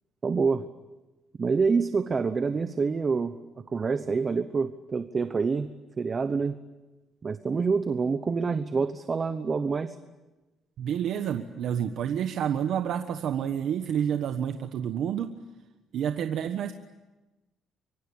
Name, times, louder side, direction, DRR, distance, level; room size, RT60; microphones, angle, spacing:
voice 1, 0.2-0.6 1.4-3.3 3.7-5.7 6.0-6.6 7.2-9.9, right 5 dB, 30° right, 10 dB, 1.0 m, -26 dB
voice 2, 10.8-15.3 15.9-16.7, right 9 dB, 65° right, 7 dB, 1.2 m, -29 dB
25.5 x 23.5 x 8.7 m, 1.1 s
cardioid pair, 140°, 0 cm